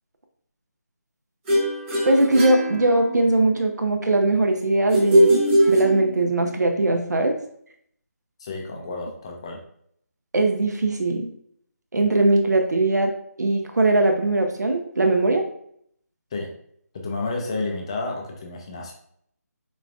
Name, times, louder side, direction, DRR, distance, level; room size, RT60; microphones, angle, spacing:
sound 1, 1.5-3.4 4.9-6.4, right 1 dB, 15° right, 1.0 m, -20 dB
voice 1, 2.0-5.3 5.7-7.4 10.3-11.3 11.9-13.1 13.4-15.4, right 2 dB, 80° right, 4 dB, 0.6 m, -20 dB
voice 2, 8.4-9.6 16.3-16.5 16.9-18.9, left 3 dB, 20° left, 1 dB, 0.4 m, -30 dB
4.9 x 2.3 x 2.4 m, 0.68 s
figure-of-eight pair, 165°, 9 cm